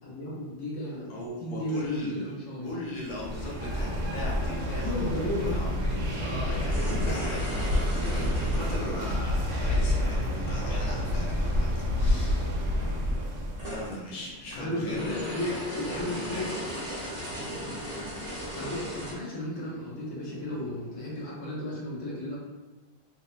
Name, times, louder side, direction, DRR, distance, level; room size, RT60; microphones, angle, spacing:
voice 1, 0.0-1.1 1.4-2.8 4.8-5.6 14.5-16.5 18.5-22.4, left 1 dB, 80° left, -5 dB, 1.2 m, -34 dB
voice 2, 1.1-2.3 2.6-12.5 13.7-16.5, left 1 dB, 50° left, -4 dB, 0.6 m, -39 dB
sound 1, 2.6-21.2, equal, 65° left, 1.1 m, -47 dB
sound 2, 3.1-13.9, left 1 dB, 80° right, 0.9 m, -28 dB
sound 3, 6.5-9.9 11.6-11.7 12.0-12.1 12.9-19.1, equal, 40° right, 0.8 m, -37 dB
2.8 x 2.0 x 2.4 m, 1.1 s
omnidirectional pair, 1.3 m